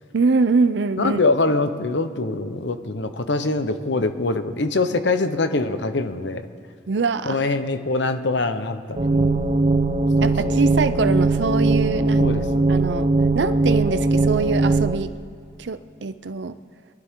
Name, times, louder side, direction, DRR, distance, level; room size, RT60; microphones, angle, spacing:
voice 1, 0.1-1.2 6.9-7.4 10.2-12.3 12.7-13.1 13.3-15.1 15.6-16.6, right 4 dB, 75° right, 13 dB, 0.6 m, -23 dB
voice 2, 1.0-6.5 7.3-9.5 10.2-10.5 12.2-12.6, left 3 dB, 80° left, 9 dB, 1.0 m, -24 dB
sound 1, 9.0-15.0, right 2 dB, 40° right, 0.6 m, -20 dB
23.5 x 13.0 x 3.8 m, 2.4 s
head